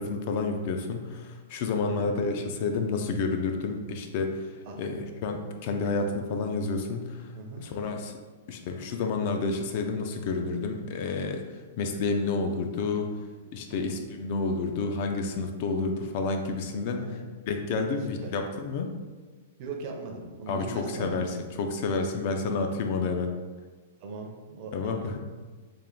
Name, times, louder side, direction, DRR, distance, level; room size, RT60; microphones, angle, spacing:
voice 1, 0.0-7.3 7.6-8.2 8.5-13.1 13.5-17.0 17.5-18.9 20.5-23.3 24.7-25.2, left 4 dB, 40° left, 4 dB, 0.3 m, -30 dB
voice 2, 16.9-17.3 17.8-18.3 19.6-21.4 24.0-24.7 25.0-25.2, right 3 dB, 35° right, 1 dB, 0.5 m, -39 dB
3.4 x 2.4 x 3.7 m, 1.4 s
supercardioid pair, 170°, 0 cm